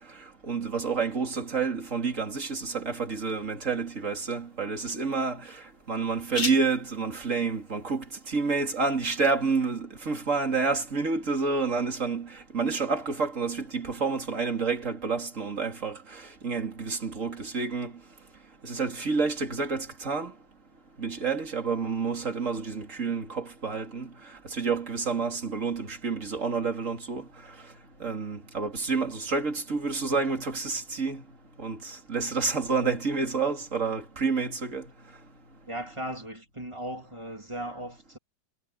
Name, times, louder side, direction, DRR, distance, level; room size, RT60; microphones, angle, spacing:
voice 1, 0.4-5.6 5.9-17.9 18.6-20.3 21.0-24.1 24.5-27.3 28.0-31.2 31.6-34.9, right 4 dB, 40° right, 3.3 m, -29 dB
sound 1, 2.3-9.8, left 4 dB, 65° left, 4.5 m, -42 dB
voice 2, 35.7-38.2, right 1 dB, 15° right, 3.2 m, -37 dB
omnidirectional pair, 2.1 m